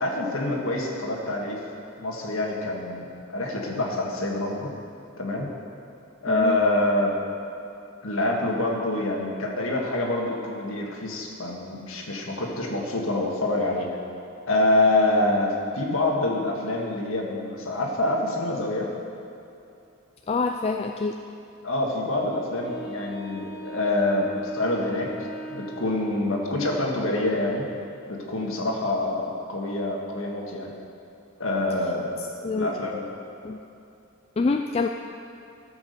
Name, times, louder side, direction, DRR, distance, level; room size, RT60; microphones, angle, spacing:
voice 1, 0.0-1.6 2.0-4.7 5.2-5.5 6.2-7.1 8.0-13.9 14.5-18.9 21.6-27.6 28.1-30.7 31.4-33.0, left 2 dB, 75° left, -1 dB, 1.7 m, -26 dB
voice 2, 6.3-6.6 20.3-21.2 32.4-32.7 33.4-33.6 34.4-34.9, left 4 dB, 30° left, 4 dB, 0.3 m, -26 dB
Wind instrument woodwind instrument, 22.6-26.7, right 2 dB, 45° left, 1.0 m, -38 dB
13.5 x 6.0 x 6.7 m, 2.7 s
head